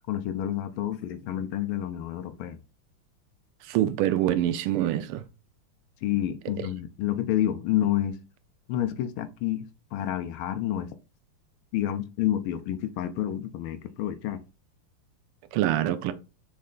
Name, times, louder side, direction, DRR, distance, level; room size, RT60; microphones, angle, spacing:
voice 1, 0.1-2.6 6.0-8.2 8.7-10.9 11.7-14.4, left 12 dB, 80° left, 1.4 m, -29 dB
voice 2, 3.7-5.2 6.6-6.7 15.5-16.1, right 12 dB, 85° right, 1.5 m, -25 dB
4.2 x 3.2 x 3.7 m
omnidirectional pair, 2.4 m